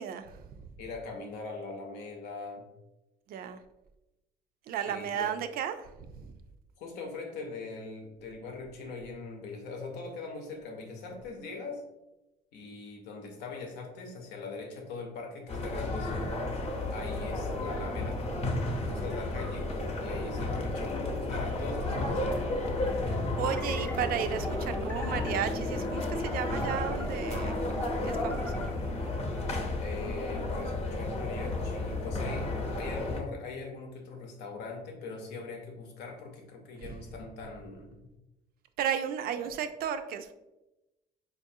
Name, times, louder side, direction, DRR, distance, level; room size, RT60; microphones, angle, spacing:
voice 1, 0.0-0.7 3.3-3.6 4.7-6.3 23.4-27.6 28.0-28.6 36.8-37.0 38.8-40.3, right 8 dB, 65° right, 9 dB, 0.4 m, -34 dB
voice 2, 0.8-2.7 4.8-5.3 6.8-11.8 12.5-16.3 16.9-18.2 18.8-19.7 20.0-22.4 29.8-38.1 39.3-39.5, left 4 dB, 80° left, 3 dB, 0.8 m, -41 dB
sound 1, 15.5-33.2, left 2 dB, 35° left, 0.7 m, -32 dB
sound 2, 23.4-28.7, left 1 dB, 10° left, 0.4 m, -40 dB
4.6 x 2.5 x 2.6 m, 0.98 s
cardioid pair, 110°, 17 cm